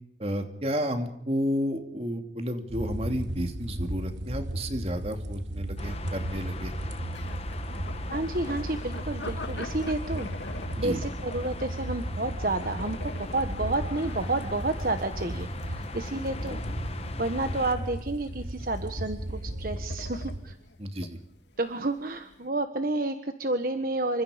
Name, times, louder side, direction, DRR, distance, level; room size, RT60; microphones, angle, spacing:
voice 1, 0.2-6.7 10.8-11.0 20.8-21.2, equal, 35° right, 6 dB, 2.7 m, -31 dB
sound 1, 2.7-20.4, right 1 dB, 85° right, 3.0 m, -35 dB
sound 2, 5.8-17.7, left 2 dB, 35° left, 1.5 m, -41 dB
sound 3, 7.1-22.5, left 3 dB, 80° left, 2.1 m, -46 dB
voice 2, 8.1-10.3 10.8-16.6 16.9-20.6 21.6-24.2, right 2 dB, 50° right, 8 dB, 1.4 m, -30 dB
28.5 x 25.5 x 5.2 m, 0.73 s
head